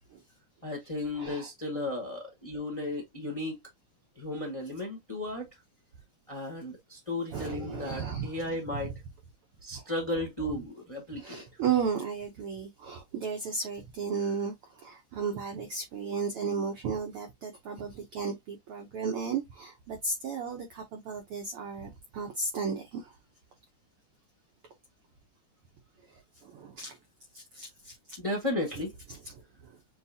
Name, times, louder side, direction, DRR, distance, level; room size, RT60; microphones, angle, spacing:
voice 1, 0.6-3.6 4.2-5.5 6.3-8.9 9.6-11.6 28.2-28.9, left 1 dB, 65° left, 0.3 m, -34 dB
voice 2, 1.1-1.5 7.3-8.4 8.7-8.8 9.7-9.8 11.2-23.1 26.1-27.0 27.3-28.0 29.1-29.7, right 5 dB, 75° right, 1.2 m, -34 dB
6.9 x 2.4 x 2.7 m
omnidirectional pair, 3.5 m